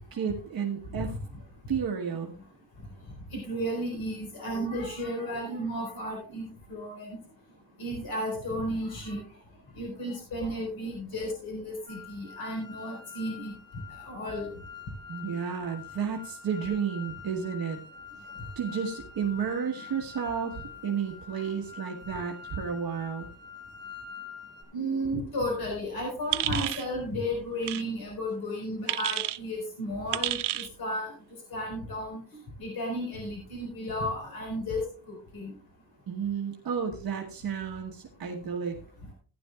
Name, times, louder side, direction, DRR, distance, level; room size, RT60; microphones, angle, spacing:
voice 1, 0.1-1.1 1.7-2.3 15.1-17.8 18.6-23.3 36.1-38.7, right 7 dB, 60° right, 0 dB, 1.3 m, -32 dB
voice 2, 3.3-7.2 7.8-9.2 9.8-13.5 13.9-14.5 24.7-31.1 31.5-32.2 32.6-35.5, equal, 60° left, -1 dB, 4.6 m, -33 dB
sound 1, 11.9-24.6, left 7 dB, 10° left, 2.1 m, -46 dB
sound 2, 26.3-26.9 27.6-27.8 28.9-29.4 30.1-30.7, right 15 dB, 80° right, 0.5 m, -30 dB
15.5 x 10.5 x 2.3 m, 0.41 s
wide cardioid pair, 170°, 40 cm